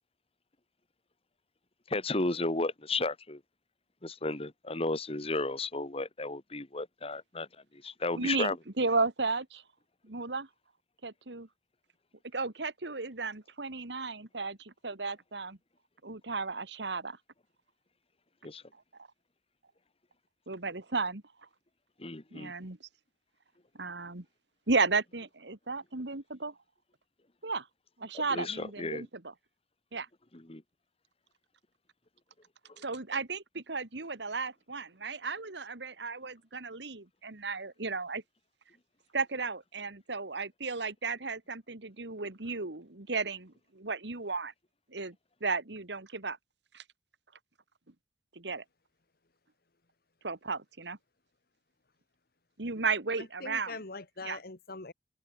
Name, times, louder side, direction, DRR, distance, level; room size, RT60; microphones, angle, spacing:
voice 1, 1.9-3.4 4.0-7.5 7.7-8.6 18.4-18.6 22.0-22.5 28.3-29.1 30.3-30.6 32.7-32.8, left 2 dB, 35° left, 1.9 m, -33 dB
voice 2, 8.1-9.6 10.0-10.5 11.0-11.5 12.3-15.6 16.0-17.2 20.5-21.2 22.3-22.8 23.7-24.3 24.7-26.5 27.4-27.7 28.0-29.1 29.9-30.1 32.8-38.2 39.1-44.5 44.9-45.2 45.4-46.4 46.7-46.8 48.4-48.6 50.2-51.0 52.6-53.8 54.2-54.4, right 4 dB, 75° right, 2.0 m, -34 dB
voice 3, 53.2-54.9, left 3 dB, 60° left, 1.8 m, -43 dB
open air
head